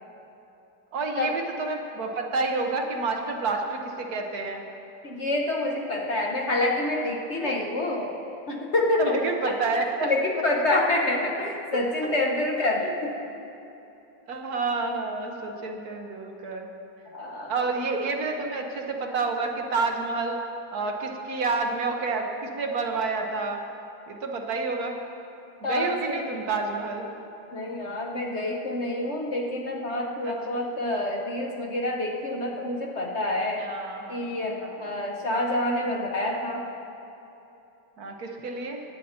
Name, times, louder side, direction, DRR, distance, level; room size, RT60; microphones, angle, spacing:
voice 1, 0.9-4.6 7.4-7.5 9.0-10.1 12.8-12.9 14.3-16.7 17.5-20.4 20.7-23.6 24.1-25.0 25.6-27.1 30.2-30.4 33.6-34.2 34.6-35.0 38.0-38.8, right 3 dB, 60° right, 2 dB, 1.4 m, -29 dB
voice 2, 5.0-8.2 8.5-9.2 9.4-9.6 10.0-13.1 17.1-17.5 25.6-26.4 27.5-33.6 34.1-36.7, left 2 dB, 45° left, 0 dB, 1.1 m, -27 dB
20.0 x 8.9 x 4.3 m, 2.9 s
omnidirectional pair, 1.9 m